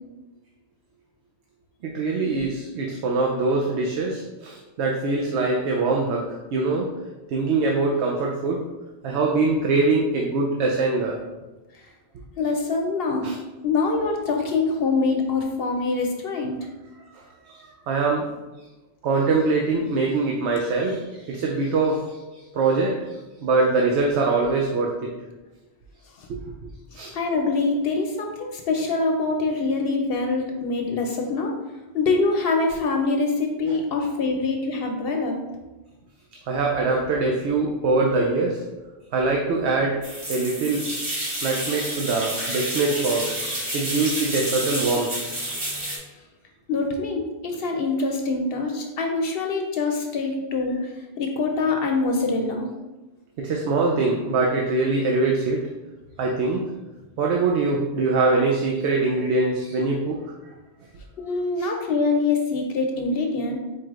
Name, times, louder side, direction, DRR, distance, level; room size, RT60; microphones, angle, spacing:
voice 1, 1.8-6.9 7.3-8.7 9.0-11.2 13.2-13.4 17.1-18.3 19.0-25.1 26.3-27.1 36.5-38.6 39.1-40.0 40.3-40.9 41.4-43.4 43.7-45.1 53.4-55.6 56.2-56.7 57.2-60.2 61.6-61.7, right 3 dB, 80° right, 0 dB, 0.9 m, -23 dB
voice 2, 12.4-16.7 26.2-26.3 27.1-31.5 31.9-35.4 46.7-52.7 61.2-63.6, left 3 dB, 65° left, 2 dB, 0.7 m, -24 dB
sound 1, 40.0-46.0, right 1 dB, 30° right, 1.1 m, -29 dB
4.7 x 4.3 x 2.4 m, 1.1 s
omnidirectional pair, 1.1 m